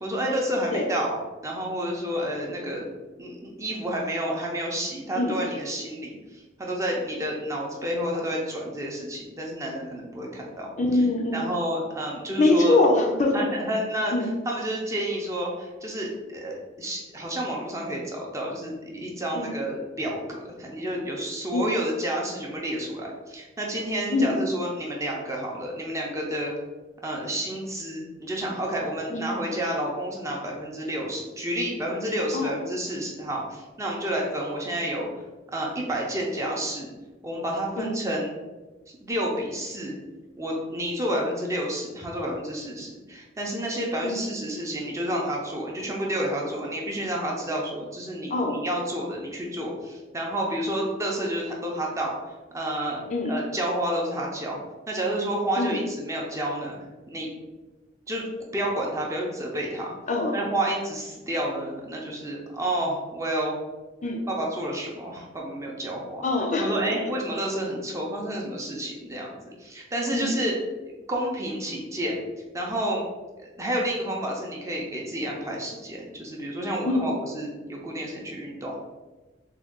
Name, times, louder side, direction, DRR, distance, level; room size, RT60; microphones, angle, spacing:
voice 1, 0.0-2.9 3.2-11.0 11.3-12.8 13.3-26.5 27.0-35.1 35.5-36.9 37.2-38.3 39.0-39.9 40.4-54.6 54.9-57.3 58.1-59.9 60.3-63.5 64.3-66.2 66.6-70.6 71.1-72.2 72.5-73.0 73.6-78.8, right 1 dB, 15° right, -2 dB, 0.5 m, -30 dB
voice 2, 10.8-11.4 12.4-13.3 14.1-14.3 19.3-19.5 21.5-21.7 24.1-24.4 29.1-29.2 32.3-32.6 37.8-37.9 44.0-44.2 48.3-48.6 53.1-53.4 55.6-55.8 60.1-60.4 64.0-64.2 66.2-66.8 70.1-70.3 76.8-77.1, left 2 dB, 40° left, 1 dB, 0.4 m, -23 dB
3.5 x 2.3 x 3.6 m, 1.2 s
head